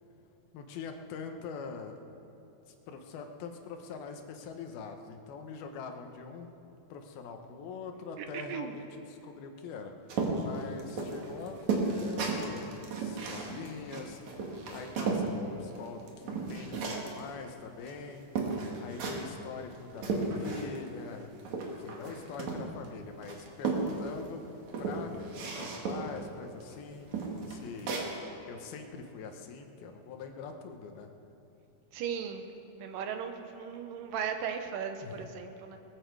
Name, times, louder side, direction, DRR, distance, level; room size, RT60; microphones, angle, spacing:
voice 1, 0.5-2.0 2.7-6.5 6.9-9.9 10.4-18.3 18.8-21.3 21.8-24.4 24.8-28.0 28.5-31.1 35.0-35.3, left 5 dB, 85° left, 5 dB, 3.0 m, -43 dB
voice 2, 8.2-8.8 31.9-32.5 32.8-35.8, right 7 dB, 75° right, 6 dB, 2.4 m, -37 dB
sound 1, 10.1-15.3 15.7-17.2 17.9-18.0 18.4-19.3 19.7-20.9 21.1-22.9 23.2-24.3 24.7-26.2 26.6-26.7 27.1-28.1, right 4 dB, 55° right, 2.8 m, -34 dB
21.0 x 14.5 x 4.7 m, 3.0 s
omnidirectional pair, 4.2 m